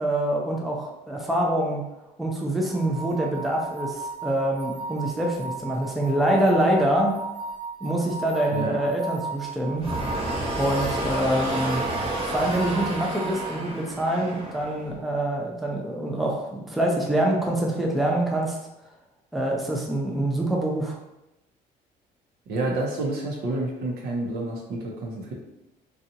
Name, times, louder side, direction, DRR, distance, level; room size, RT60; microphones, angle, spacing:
voice 1, 0.0-1.8 2.2-7.2 7.8-9.9 10.6-11.8 12.3-18.6 19.3-21.0, right 1 dB, ahead, -1 dB, 0.5 m, -25 dB
sound 1, 2.7-13.5, right 4 dB, 60° left, 0.8 m, -36 dB
sound 2, 9.8-14.9, right 1 dB, 35° right, 0.8 m, -30 dB
voice 2, 22.5-25.3, right 2 dB, 70° right, -1 dB, 0.8 m, -29 dB
2.7 x 2.3 x 2.6 m, 0.91 s
cardioid pair, 110°, 17 cm